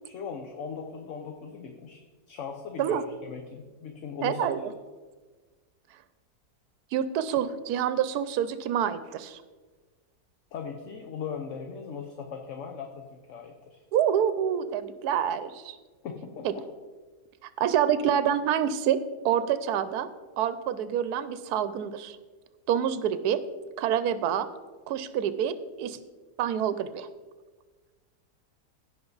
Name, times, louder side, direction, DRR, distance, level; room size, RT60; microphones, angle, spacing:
voice 1, 0.0-4.5 10.5-13.8 16.0-16.7, left 6 dB, 60° left, 4 dB, 1.0 m, -39 dB
voice 2, 4.2-4.6 6.9-9.4 13.9-15.8 16.4-16.5 17.4-19.0 19.2-20.1 20.4-22.2 22.7-23.4 23.8-24.5 24.9-26.0 26.4-27.1, right 9 dB, 75° right, 13 dB, 1.1 m, -27 dB
16.5 x 5.5 x 3.9 m, 1.3 s
omnidirectional pair, 1.7 m